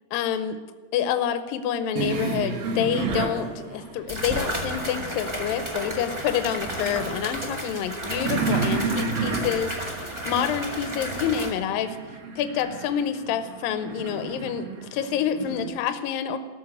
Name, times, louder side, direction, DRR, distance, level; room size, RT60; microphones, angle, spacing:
voice 1, 0.1-0.6 0.9-12.0 12.4-16.4, left 8 dB, 80° left, 10 dB, 2.5 m, -28 dB
sound 1, 2.0-5.3 5.7-15.6, right 4 dB, 85° right, 3.5 m, -32 dB
sound 2, 4.1-11.5, equal, 25° right, 0.5 m, -32 dB
14.0 x 7.3 x 9.5 m, 1.4 s
omnidirectional pair, 4.1 m